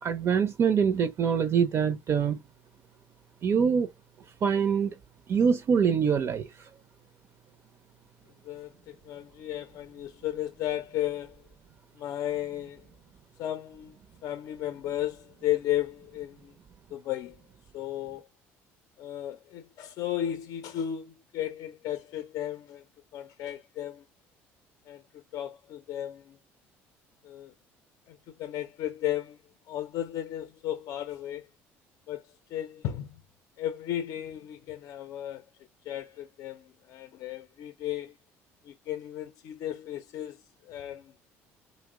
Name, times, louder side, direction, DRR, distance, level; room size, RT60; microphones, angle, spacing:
voice 1, 0.0-2.4 3.4-3.9 4.4-5.0 5.3-6.7, right 6 dB, 45° right, 0.5 m, -24 dB
voice 2, 8.4-11.4 12.0-12.9 13.4-14.0 14.2-16.5 16.9-17.4 17.7-18.3 19.0-22.8 23.1-24.0 24.9-26.4 27.2-27.5 28.1-29.4 29.7-31.5 32.1-33.2 33.6-35.4 35.9-38.1 38.6-41.1, left 12 dB, 65° left, 0.5 m, -34 dB
2.9 x 2.0 x 3.5 m
supercardioid pair, 75°, 6 cm